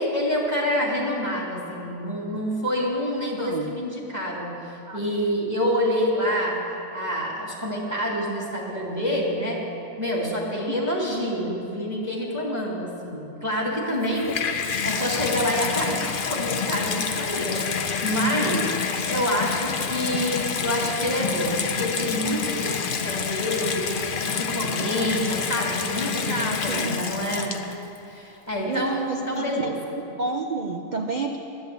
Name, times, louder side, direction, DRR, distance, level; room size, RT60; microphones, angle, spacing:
voice 1, 0.0-4.5 4.9-6.6 6.9-9.6 10.0-23.9 24.3-27.6 28.0-29.7, equal, 10° right, -4 dB, 2.2 m, -27 dB
voice 2, 3.4-3.7 4.8-5.0 10.7-11.0 26.3-27.0 28.7-29.7 30.1-31.4, right 3 dB, 85° right, 2 dB, 0.4 m, -30 dB
Water tap faucet / Bathtub (filling or washing), 13.9-28.0 28.7-28.8, left 6 dB, 60° left, 0.5 m, -28 dB
11.0 x 9.3 x 8.0 m, 2.8 s
omnidirectional pair, 1.8 m